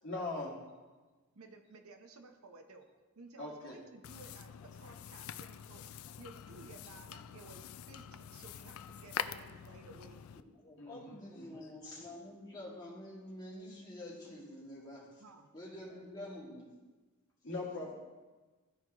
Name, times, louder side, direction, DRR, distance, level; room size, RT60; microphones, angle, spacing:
voice 1, 0.0-0.6 3.4-3.8 10.8-11.7 17.4-17.9, left 2 dB, 55° left, -3 dB, 1.7 m, -41 dB
voice 2, 1.3-2.9 3.2-5.8 6.2-10.2 15.2-15.5, right 3 dB, 80° right, 5 dB, 0.8 m, -55 dB
sound 1, 4.0-10.4, left 9 dB, 75° left, 0.3 m, -45 dB
voice 3, 10.3-15.2 15.5-16.7, left 1 dB, 20° left, -6 dB, 2.1 m, -48 dB
13.5 x 4.5 x 3.0 m, 1.3 s
head